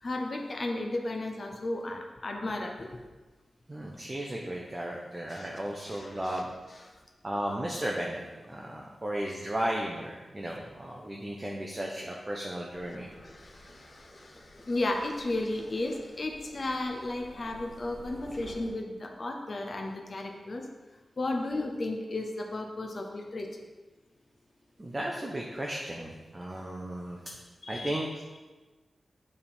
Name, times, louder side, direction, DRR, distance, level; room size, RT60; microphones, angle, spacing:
voice 1, 0.0-3.0 5.3-5.5 5.9-6.4 13.2-20.6 21.2-23.6 27.6-27.9, left 2 dB, 40° left, 2 dB, 0.7 m, -34 dB
voice 2, 3.7-6.5 7.2-8.2 8.5-13.1 24.8-27.2 27.7-28.2, right 1 dB, 20° right, -1 dB, 0.6 m, -35 dB
sound 1, 12.7-18.7, equal, 15° left, 1.7 m, -51 dB
9.5 x 3.6 x 4.4 m, 1.2 s
wide cardioid pair, 165°, 0 cm